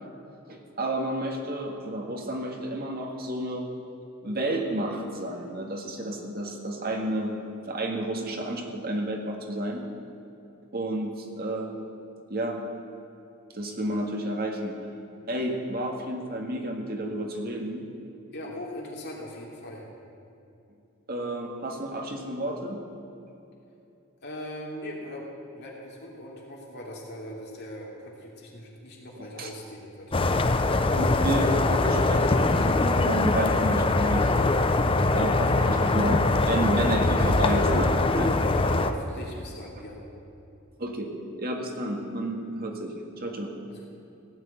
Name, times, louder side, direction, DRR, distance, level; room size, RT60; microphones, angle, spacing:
voice 1, 0.5-3.7 4.2-7.3 7.6-9.8 10.7-11.7 12.3-12.6 13.5-14.7 15.3-17.8 21.1-22.8 29.4-29.5 30.6-34.3 35.1-38.4 40.8-41.1 41.4-43.5, right 1 dB, 50° right, 2 dB, 1.8 m, -31 dB
voice 2, 18.3-19.8 24.2-25.2 25.5-30.1 35.5-35.7 38.4-40.0 42.5-42.6 43.7-43.9, left 1 dB, 55° left, -2 dB, 3.0 m, -40 dB
sound 1, 30.1-38.9, left 2 dB, 25° left, 0.6 m, -23 dB
16.0 x 6.3 x 9.3 m, 2.8 s
head